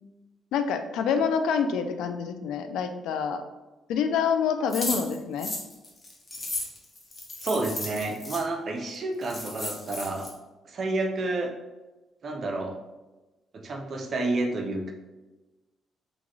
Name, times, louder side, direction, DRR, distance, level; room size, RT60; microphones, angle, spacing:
voice 1, 0.5-3.4 3.9-5.5, left 6 dB, 85° left, 8 dB, 0.3 m, -27 dB
sound 1, 4.7-8.4 8.9-9.0 9.2-10.3, left 2 dB, 30° left, 0.9 m, -34 dB
voice 2, 7.4-10.3 10.6-11.5 12.2-12.8 13.5-14.9, right 2 dB, 50° right, 3 dB, 0.6 m, -30 dB
3.8 x 2.3 x 3.1 m, 1.1 s
cardioid pair, 90°, 0 cm